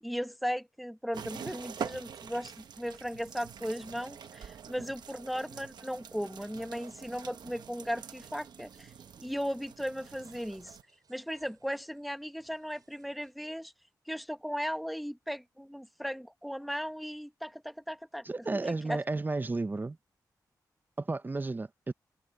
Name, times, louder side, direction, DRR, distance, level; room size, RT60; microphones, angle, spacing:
voice 1, 0.0-8.9 9.2-10.8 11.1-13.7 14.1-19.0, equal, ahead, 1.2 m, -37 dB
sound 1, 1.1-10.8, right 7 dB, 85° right, 1.0 m, -45 dB
sound 2, 2.1-13.3, right 6 dB, 65° right, 7.0 m, -68 dB
voice 2, 18.2-20.0 21.0-21.9, right 3 dB, 25° right, 0.7 m, -33 dB
cardioid pair, 85°, 7 cm